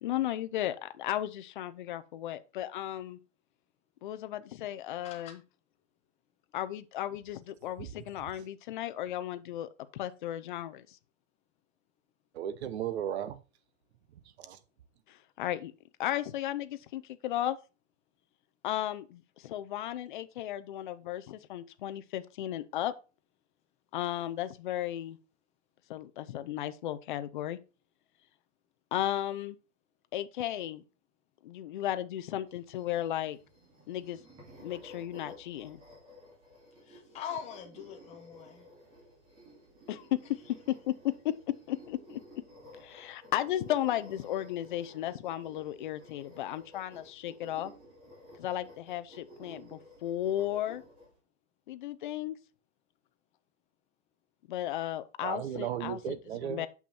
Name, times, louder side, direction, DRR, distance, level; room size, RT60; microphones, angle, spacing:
voice 1, 0.0-3.2 4.0-5.4 6.5-11.0 15.1-15.7 16.0-17.6 18.6-22.9 23.9-25.2 25.9-27.6 28.9-29.6 30.1-30.8 31.4-33.4 33.9-34.2 34.6-35.8 39.9-40.2 40.7-40.8 41.7-42.2 42.8-47.7 48.4-50.8 51.7-52.4 54.5-56.1 56.5-56.7, left 12 dB, 40° left, 0.6 m, -35 dB
voice 2, 5.0-5.3 36.9-38.7, left 8 dB, 15° left, 1.1 m, -42 dB
voice 3, 12.3-13.4 14.4-14.6 55.2-56.7, right 10 dB, 60° right, 1.0 m, -36 dB
sound 1, 32.5-51.1, equal, 15° right, 2.7 m, -54 dB
7.1 x 6.0 x 4.2 m
supercardioid pair, 170°, 37 cm